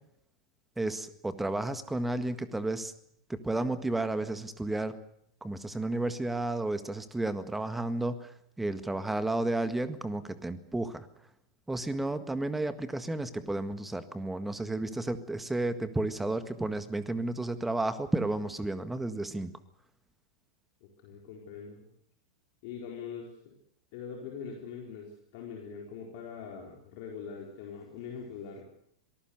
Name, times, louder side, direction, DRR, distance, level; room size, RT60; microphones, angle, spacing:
voice 1, 0.8-2.9 3.3-5.0 5.4-11.1 11.7-19.6, right 2 dB, 5° right, 11 dB, 1.7 m, -32 dB
voice 2, 21.0-21.9 22.6-23.5 23.9-28.6, left 6 dB, 50° left, 0 dB, 4.4 m, -42 dB
26.5 x 19.0 x 6.7 m, 0.71 s
figure-of-eight pair, 90°, 2 cm